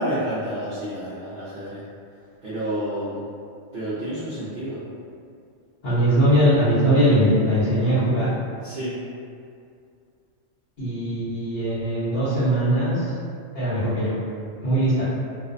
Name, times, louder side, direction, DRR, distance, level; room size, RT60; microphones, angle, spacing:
voice 1, 0.0-1.8 2.4-3.2 3.7-4.8 8.6-8.9, equal, 60° right, -11 dB, 0.6 m, -29 dB
voice 2, 5.8-8.3 10.8-13.1 13.5-14.2 14.6-15.0, equal, 50° left, -13 dB, 0.7 m, -20 dB
2.5 x 2.0 x 2.5 m, 2.3 s
omnidirectional pair, 1.3 m